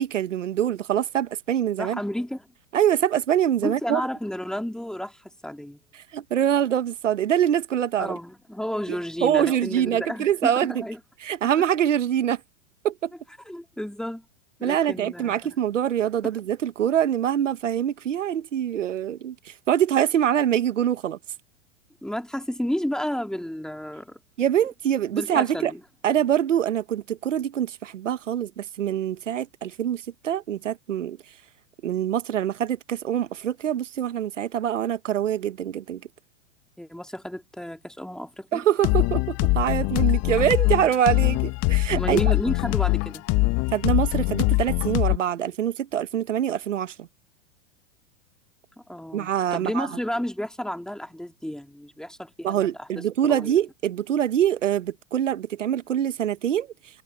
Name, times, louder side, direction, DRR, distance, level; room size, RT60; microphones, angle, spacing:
voice 1, 0.0-2.0 2.7-4.0 6.1-8.1 9.2-10.8 11.2-12.4 12.8-13.1 14.6-19.3 19.7-21.2 24.4-25.7 26.0-31.2 31.8-36.0 38.5-42.3 43.7-47.1 49.1-49.9 52.4-56.7, right 10 dB, 85° right, 1.5 m, -24 dB
voice 2, 1.8-2.5 3.6-5.8 8.0-11.0 13.4-14.2 14.6-15.5 22.0-24.2 25.1-25.8 36.8-38.6 42.0-43.3 48.9-53.5, equal, ahead, 3.3 m, -32 dB
sound 1, 38.8-45.2, left 23 dB, 45° left, 1.7 m, -23 dB
hypercardioid pair, 115°, 36 cm